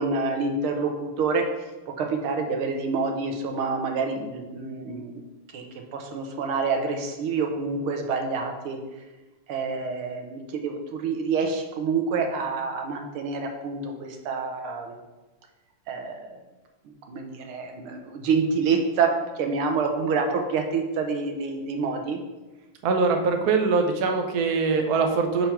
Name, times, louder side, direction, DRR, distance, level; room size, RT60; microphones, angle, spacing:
voice 1, 0.0-1.4 1.9-5.2 5.5-5.6 5.9-8.8 9.5-15.0 15.9-16.3 16.9-19.1 19.4-22.2, right 4 dB, 80° right, 3 dB, 1.7 m, -27 dB
voice 2, 22.8-25.5, right 4 dB, 65° right, 4 dB, 1.0 m, -22 dB
5.1 x 4.5 x 5.7 m, 1.1 s
omnidirectional pair, 2.3 m